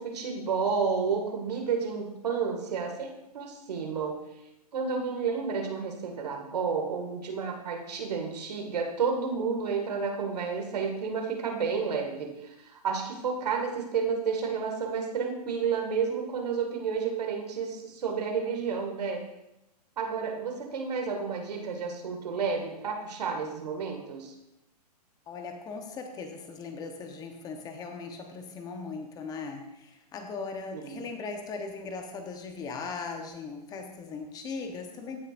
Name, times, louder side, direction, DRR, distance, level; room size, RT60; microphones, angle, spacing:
voice 1, 0.0-4.3 4.7-19.2 20.0-24.3 30.7-31.0, right 5 dB, 75° right, 2 dB, 2.1 m, -31 dB
voice 2, 25.3-35.2, left 4 dB, 20° left, 4 dB, 1.0 m, -39 dB
15.0 x 6.7 x 2.6 m, 0.89 s
hypercardioid pair, 130°, 21 cm